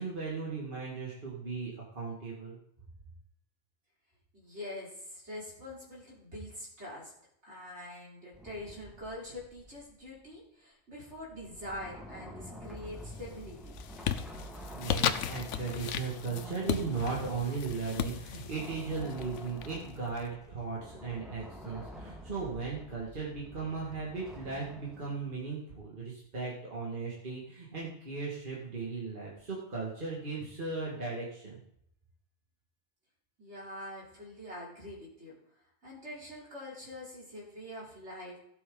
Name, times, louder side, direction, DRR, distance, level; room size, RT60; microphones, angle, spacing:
voice 1, 0.0-2.6 14.7-31.5, right 4 dB, 45° right, -4 dB, 2.2 m, -37 dB
voice 2, 4.3-7.1 7.4-13.8 33.4-35.3 35.8-38.4, left 1 dB, 65° right, -5 dB, 3.9 m, -44 dB
sound 1, 8.3-10.3 11.1-25.4, equal, ahead, 1.6 m, -48 dB
sound 2, 12.7-13.2 13.6-20.2, left 9 dB, 80° left, 1.0 m, -36 dB
17.0 x 7.2 x 3.9 m, 0.73 s
omnidirectional pair, 1.2 m